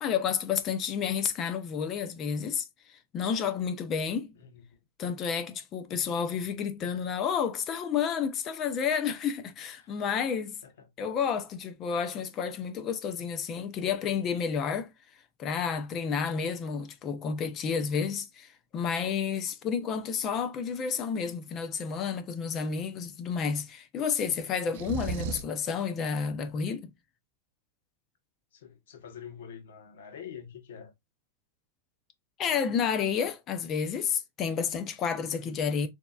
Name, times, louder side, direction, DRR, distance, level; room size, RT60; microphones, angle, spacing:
voice 1, 0.0-4.3 5.0-10.6 11.0-14.9 15.4-26.9 32.4-35.9, left 6 dB, 25° left, 0.6 m, -30 dB
sound 1, 24.7-25.6, right 5 dB, 50° right, 0.6 m, -34 dB
voice 2, 28.5-30.9 35.3-35.6, left 8 dB, 85° left, 1.2 m, -46 dB
6.7 x 2.7 x 2.4 m
supercardioid pair, 170°, 0 cm